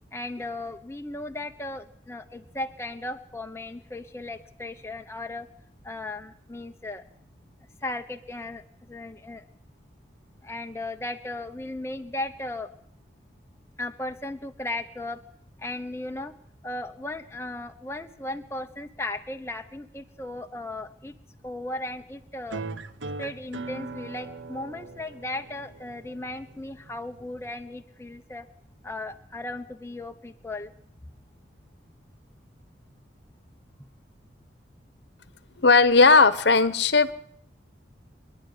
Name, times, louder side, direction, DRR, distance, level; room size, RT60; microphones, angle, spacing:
voice 1, 0.1-5.5 5.8-7.0 7.8-9.4 10.4-12.7 13.8-15.2 15.6-16.3 16.6-21.1 21.4-22.6 23.2-28.5 28.8-30.7, left 2 dB, 15° left, 5 dB, 0.9 m, -36 dB
sound 1, 22.5-27.5, right 3 dB, 85° right, 1.2 m, -40 dB
voice 2, 35.6-37.1, left 4 dB, 65° left, 14 dB, 1.1 m, -17 dB
25.5 x 11.0 x 9.5 m, 0.69 s
head